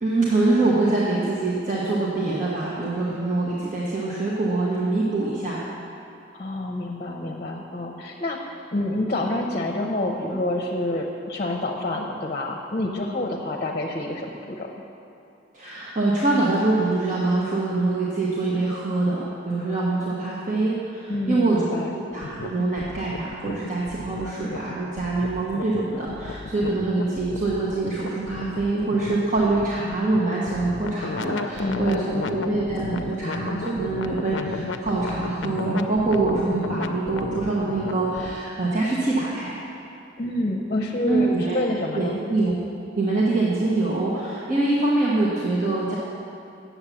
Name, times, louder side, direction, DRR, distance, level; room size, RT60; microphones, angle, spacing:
voice 1, 0.0-5.6 15.5-21.8 22.1-39.6 41.1-41.6 41.9-42.5 42.9-46.0, right 2 dB, 45° right, -6 dB, 1.1 m, -24 dB
voice 2, 6.3-14.7 21.1-22.0 31.6-32.3 40.2-42.2, left 1 dB, 35° left, 1 dB, 0.7 m, -28 dB
sound 1, 22.1-38.4, left 4 dB, 85° left, 0.5 m, -34 dB
8.6 x 7.2 x 7.1 m, 2.7 s
head